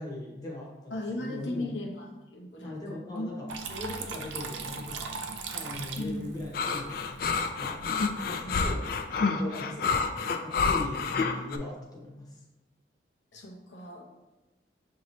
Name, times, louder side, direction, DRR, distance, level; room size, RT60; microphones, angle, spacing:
voice 1, 0.0-0.9 1.2-1.7 2.6-5.2 5.5-7.8 8.3-9.9 10.4-12.4, left 2 dB, 20° left, -3 dB, 0.8 m, -40 dB
voice 2, 0.9-2.1 2.3-3.3 6.0-6.3 8.4-8.9 13.3-14.1, left 1 dB, 85° left, 0 dB, 0.8 m, -37 dB
Water tap faucet / Trickle dribble, 3.5-8.5, right 5 dB, 85° right, 0.5 m, -40 dB
sound 1, 6.5-11.6, left 5 dB, 50° left, 0.3 m, -28 dB
6.3 x 2.7 x 3.0 m, 1.1 s
head